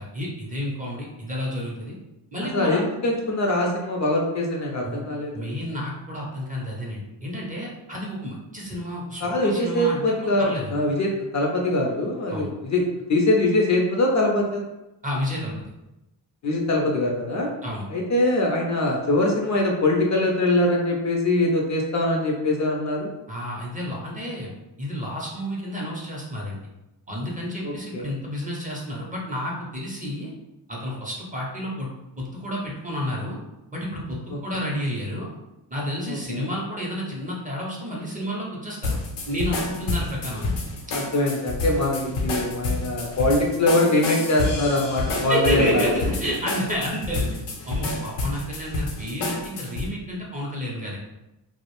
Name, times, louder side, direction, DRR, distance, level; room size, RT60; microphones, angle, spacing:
voice 1, 0.0-2.0 2.3-2.8 4.8-5.0 5.3-10.7 12.3-12.5 15.0-15.5 17.6-17.9 23.3-24.5 24.8-26.6 27.1-30.3 30.7-31.9 32.2-33.4 33.7-35.3 35.7-39.0 39.2-40.5 45.3-47.4 47.7-51.0, equal, 20° right, -3 dB, 0.5 m, -30 dB
voice 2, 2.5-5.5 9.2-14.6 16.4-17.5 17.9-23.1 27.6-28.0 36.1-36.5 40.9-45.9, left 1 dB, 40° left, 0 dB, 0.4 m, -23 dB
sound 1, 38.8-49.9, left 3 dB, 75° left, 0.7 m, -29 dB
2.4 x 2.0 x 2.9 m, 0.96 s
cardioid pair, 105°, 45 cm